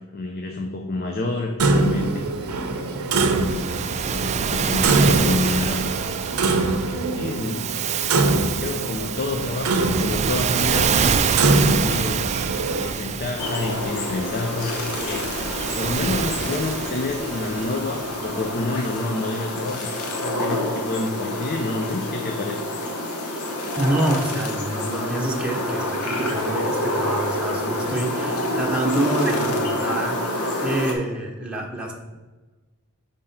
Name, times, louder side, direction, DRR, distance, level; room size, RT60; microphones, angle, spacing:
voice 1, 0.1-5.9 6.4-7.7 8.1-12.3 12.7-15.4 15.7-22.7, left 2 dB, 45° left, 3 dB, 0.6 m, -29 dB
Clock, 1.6-12.9, right 2 dB, 80° right, 0.7 m, -24 dB
Waves surf, 3.1-18.6, right 7 dB, 30° right, 0.3 m, -26 dB
sound 1, 13.4-30.9, left 1 dB, 85° left, 1.1 m, -28 dB
voice 2, 23.8-30.2 30.6-32.1, right 1 dB, 5° right, -1 dB, 0.9 m, -26 dB
5.5 x 3.6 x 5.5 m, 1.2 s
head